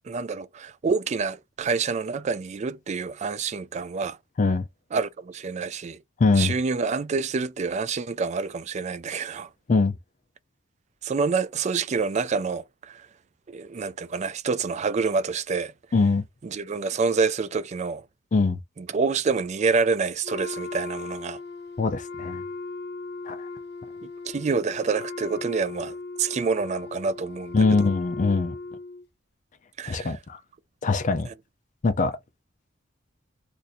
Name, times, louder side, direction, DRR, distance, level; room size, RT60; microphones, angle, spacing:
voice 1, 0.1-4.2 4.9-6.0 6.4-9.5 11.0-13.0 13.5-15.7 16.4-18.0 18.8-21.4 24.3-27.6 29.8-30.1 31.3-31.4, right 4 dB, 35° right, 0.3 m, -27 dB
voice 2, 6.2-6.5 9.7-9.9 15.9-16.2 18.3-18.6 21.8-22.4 23.3-23.4 27.5-28.6 29.9-30.4 30.8-31.3 31.8-32.1, left 4 dB, 40° left, 0.4 m, -22 dB
Wind instrument woodwind instrument, 20.2-29.1, left 3 dB, 55° left, 0.8 m, -37 dB
2.6 x 2.5 x 4.1 m
head